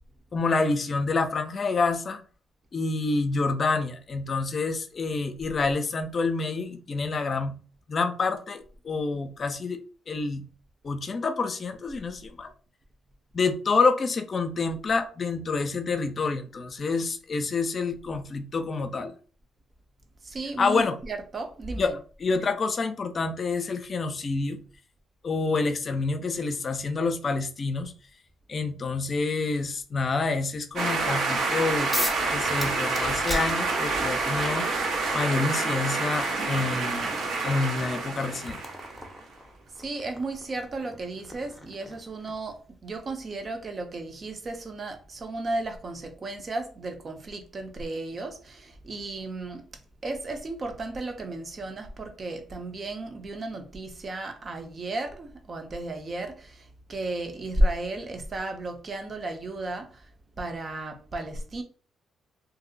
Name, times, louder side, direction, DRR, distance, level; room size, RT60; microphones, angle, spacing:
voice 1, 0.3-2.2 2.7-7.5 7.9-9.8 10.1-10.4 10.8-12.5 13.3-19.1 20.6-21.0 21.8-24.6 25.2-27.9 28.5-31.9 32.3-34.8 35.1-38.6, left 4 dB, 45° left, 0.5 m, -28 dB
voice 2, 20.2-21.9 39.8-49.6 50.0-60.1 60.4-61.6, right 2 dB, 40° right, 0.7 m, -33 dB
sound 1, 30.8-39.1, right 3 dB, 70° right, 0.8 m, -28 dB
sound 2, 31.9-32.3 32.6-34.1 35.3-35.4 35.9-42.5, left 1 dB, 5° left, 0.7 m, -38 dB
2.6 x 2.0 x 3.8 m
cardioid pair, 90°, 0 cm